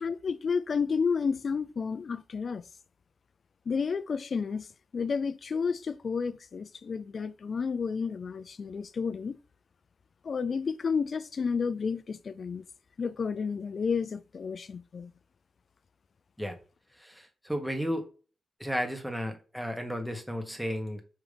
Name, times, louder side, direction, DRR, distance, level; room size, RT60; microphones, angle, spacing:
voice 1, 0.0-2.6 3.7-4.7 4.9-9.4 10.2-12.6 13.0-15.1, left 5 dB, 60° left, 0.4 m, -31 dB
voice 2, 17.0-18.1 18.6-21.0, equal, 5° right, 1.4 m, -33 dB
5.8 x 5.3 x 3.4 m
cardioid pair, 75°, 0 cm